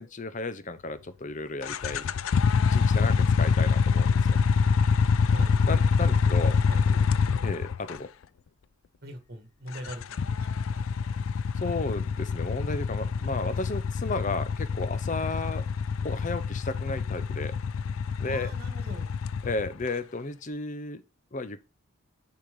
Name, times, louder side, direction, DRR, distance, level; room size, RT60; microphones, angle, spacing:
voice 1, 0.0-2.1 2.7-4.4 5.6-6.6 7.4-8.1 11.6-15.7 16.0-17.6 18.2-18.5 19.4-21.0 21.3-21.6, left 3 dB, 35° left, 0.6 m, -33 dB
sound 1, 1.6-8.0 9.8-19.9, left 5 dB, 80° left, 0.4 m, -25 dB
voice 2, 6.1-6.8 9.0-10.5 18.2-19.1, right 1 dB, 45° right, 1.7 m, -42 dB
6.8 x 4.8 x 5.1 m
head